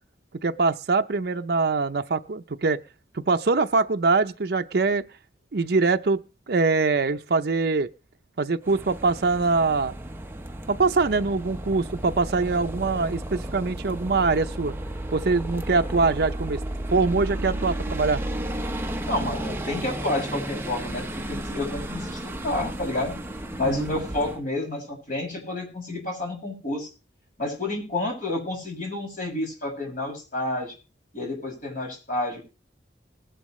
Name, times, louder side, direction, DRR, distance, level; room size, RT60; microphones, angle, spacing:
voice 1, 0.4-2.8 3.1-5.1 5.5-7.9 8.4-9.9 10.7-14.7 15.1-16.6 16.9-18.2 23.7-23.9, right 4 dB, 60° right, 6 dB, 0.6 m, -23 dB
sound 1, 8.6-24.4, right 1 dB, 15° right, 0.9 m, -33 dB
voice 2, 19.0-23.1 23.6-26.9 27.4-30.7 31.1-32.4, left 2 dB, 50° left, 0 dB, 6.5 m, -30 dB
19.5 x 11.0 x 3.2 m, 0.31 s
head